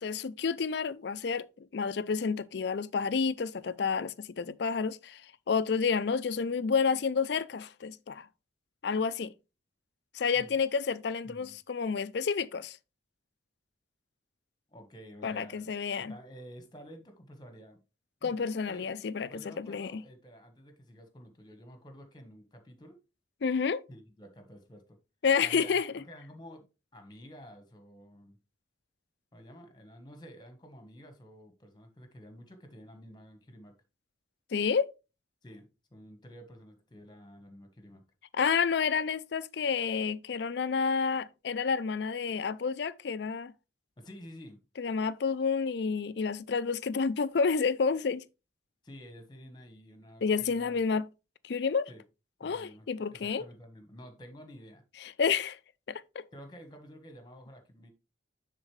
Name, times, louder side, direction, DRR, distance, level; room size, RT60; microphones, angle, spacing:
voice 1, 0.0-8.3 8.8-9.3 10.1-12.8 15.2-16.1 18.2-19.3 19.6-20.0 23.4-23.8 25.2-25.9 34.5-34.9 38.3-43.5 44.8-48.2 50.2-51.1 51.4-51.9 52.4-53.4 55.0-55.6 55.9-56.2, left 5 dB, 60° left, 0.4 m, -30 dB
voice 2, 11.2-11.6 14.7-15.7 16.1-17.8 18.2-18.4 18.7-18.8 19.3-23.0 23.9-25.0 25.4-26.7 26.9-28.4 29.3-33.7 35.4-38.0 44.0-44.6 48.8-50.8 51.9-52.0 52.4-54.8 56.3-57.9, equal, 20° left, 1.3 m, -50 dB
9.9 x 4.1 x 3.2 m
head